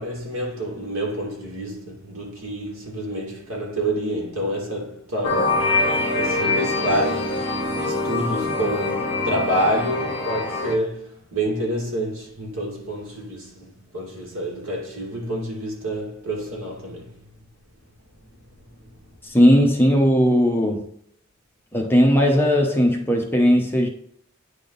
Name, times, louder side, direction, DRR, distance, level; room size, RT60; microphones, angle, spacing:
voice 1, 0.0-17.2 18.8-18.9 19.2-19.3, right 1 dB, 75° right, 2.4 m, -28 dB
sound 1, 5.2-10.7, left 2 dB, 25° left, 1.7 m, -24 dB
voice 2, 19.2-20.9 21.7-23.9, equal, 10° left, 0.8 m, -17 dB
9.3 x 3.6 x 3.9 m
head